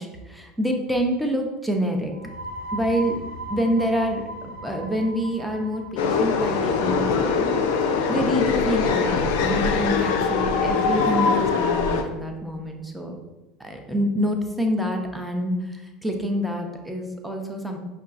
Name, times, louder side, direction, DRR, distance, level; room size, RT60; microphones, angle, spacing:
voice 1, 0.0-2.1 2.7-3.2 3.5-7.5 8.1-13.1 13.6-17.8, equal, 5° right, 3 dB, 0.6 m, -27 dB
sound 1, 2.1-9.5, right 1 dB, 70° right, 0.9 m, -39 dB
sound 2, 6.0-12.0, left 5 dB, 70° left, 0.4 m, -22 dB
5.4 x 2.3 x 2.5 m, 1.1 s
hypercardioid pair, 75°, 0 cm